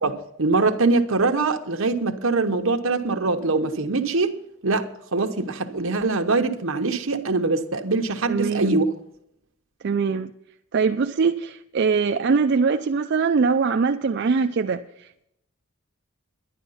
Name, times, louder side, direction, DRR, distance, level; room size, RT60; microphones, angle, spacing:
voice 1, 0.0-4.4 4.6-8.8, right 3 dB, 65° right, 1.0 m, -23 dB
voice 2, 8.3-8.8 9.8-10.3 10.7-15.3, right 5 dB, 50° right, 0.4 m, -22 dB
11.0 x 10.5 x 5.6 m
head